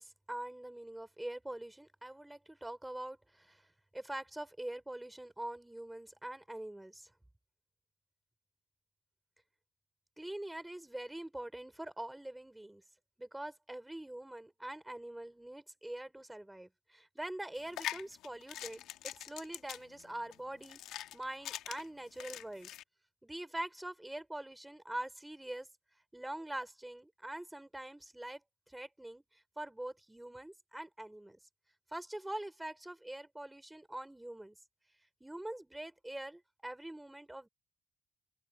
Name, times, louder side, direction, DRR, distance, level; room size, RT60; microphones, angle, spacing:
voice 1, 0.0-7.1 10.2-12.8 13.2-20.8 21.1-22.7 23.2-25.7 26.1-28.4 28.7-31.4 31.9-34.6 35.2-37.5, right 1 dB, 10° right, 4.8 m, -44 dB
sound 1, 17.6-22.8, left 13 dB, 90° left, 1.9 m, -44 dB
open air
cardioid pair, 90°, 0 cm